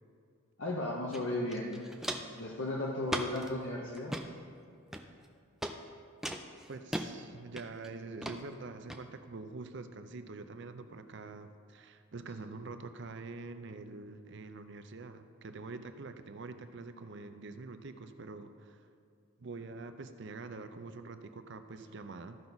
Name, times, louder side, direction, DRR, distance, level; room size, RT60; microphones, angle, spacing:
voice 1, 0.6-1.9 2.4-4.3, left 1 dB, 65° left, -2 dB, 0.8 m, -35 dB
Walk footsteps, 1.1-1.2 1.5-2.4 3.1-3.5 4.0-4.3 4.9-5.3 5.6-5.8 6.2-7.1 7.6-7.9 8.2-8.4 8.9-9.0, right 1 dB, ahead, 0.3 m, -37 dB
voice 2, 6.7-18.8 19.4-22.4, right 3 dB, 55° right, 9 dB, 0.5 m, -45 dB
14.0 x 5.8 x 4.0 m, 2.4 s
head